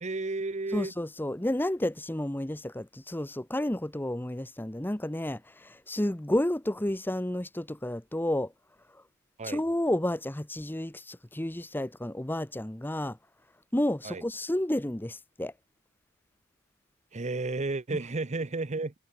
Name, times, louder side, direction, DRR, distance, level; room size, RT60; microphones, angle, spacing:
voice 1, 0.0-0.9 9.4-9.6 14.0-14.2 17.1-18.9, right 3 dB, 30° right, 0.8 m, -32 dB
voice 2, 0.7-8.5 9.4-13.2 13.7-15.5, left 1 dB, 10° left, 0.8 m, -31 dB
head